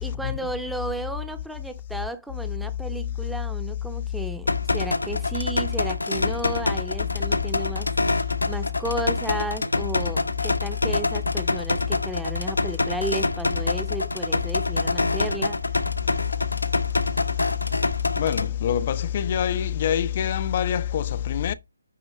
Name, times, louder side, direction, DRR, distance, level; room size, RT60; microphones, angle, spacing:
voice 1, 0.0-15.6, right 1 dB, ahead, 0.9 m, -33 dB
sound 1, 4.5-18.5, left 2 dB, 80° left, 1.1 m, -26 dB
voice 2, 18.2-21.5, left 9 dB, 35° left, 0.6 m, -25 dB
9.5 x 4.6 x 3.2 m
figure-of-eight pair, 145°, 0 cm